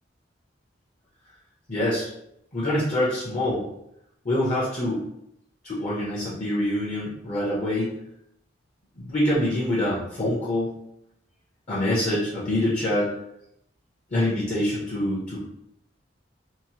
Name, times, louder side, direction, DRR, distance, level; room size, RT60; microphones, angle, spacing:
voice 1, 1.7-2.1 2.5-3.7 4.2-5.0 5.6-8.0 9.0-10.7 11.7-13.1 14.1-15.4, left 1 dB, 40° left, -7 dB, 0.7 m, -25 dB
2.8 x 2.0 x 2.8 m, 0.78 s
head